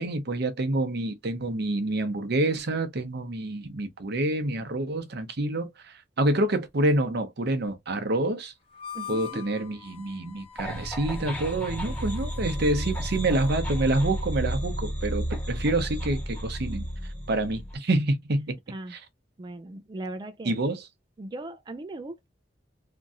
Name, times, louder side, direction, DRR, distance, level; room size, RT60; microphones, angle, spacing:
voice 1, 0.0-8.5 9.1-16.8 17.3-18.5 18.9-19.0 20.4-20.8, right 2 dB, 60° right, 0.7 m, -27 dB
Harmonica, 8.7-14.4, left 8 dB, 30° left, 0.8 m, -45 dB
voice 2, 8.9-9.4 18.7-18.9 19.4-20.6 21.2-22.3, right 2 dB, 25° right, 0.3 m, -38 dB
sound 1, 10.6-17.7, equal, 10° left, 1.4 m, -32 dB
2.9 x 2.6 x 2.4 m
head